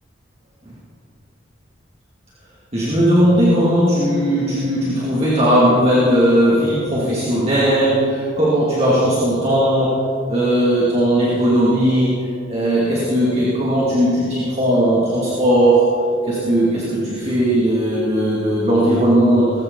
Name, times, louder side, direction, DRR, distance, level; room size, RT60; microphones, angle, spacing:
voice 1, 2.7-12.2 12.5-15.9 16.2-19.6, equal, 35° right, -7 dB, 2.6 m, -17 dB
20.0 x 15.5 x 4.1 m, 2.8 s
head